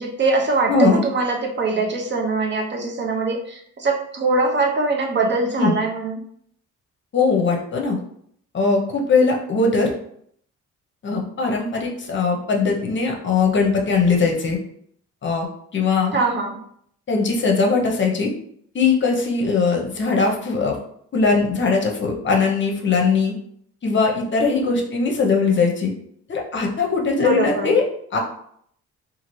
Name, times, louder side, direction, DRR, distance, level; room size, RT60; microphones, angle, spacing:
voice 1, 0.0-6.2 16.1-16.6 27.2-27.7, right 3 dB, 40° right, 1 dB, 0.6 m, -22 dB
voice 2, 0.7-1.0 5.6-5.8 7.1-8.0 8.5-9.9 11.0-14.6 15.2-15.5 15.7-16.2 17.1-18.3 18.7-20.8 21.1-23.3 23.8-25.9 26.3-27.8 28.1-28.2, left 4 dB, 40° left, 0 dB, 0.7 m, -20 dB
2.7 x 2.5 x 3.0 m, 0.67 s
cardioid pair, 90°, 30 cm